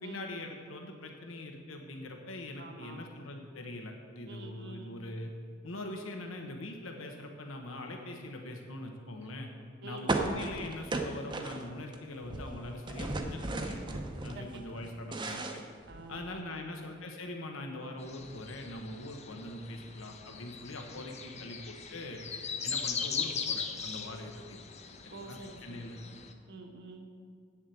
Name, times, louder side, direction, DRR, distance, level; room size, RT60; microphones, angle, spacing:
voice 1, 0.0-5.3 5.6-9.5 9.8-13.8 14.2-15.6 16.1-22.2 22.6-24.6 25.3-26.0, left 1 dB, 85° left, 3 dB, 1.1 m, -42 dB
voice 2, 2.6-3.1 4.3-5.0 9.8-10.4 14.3-15.2 15.9-16.7 25.1-27.1, right 2 dB, 55° right, 3 dB, 1.2 m, -48 dB
sound 1, 10.1-12.0 12.2-14.4 14.8-16.3, right 2 dB, 25° right, 0.8 m, -35 dB
sound 2, 18.0-26.3, left 6 dB, 35° left, 0.7 m, -39 dB
8.6 x 7.3 x 7.7 m, 2.1 s
head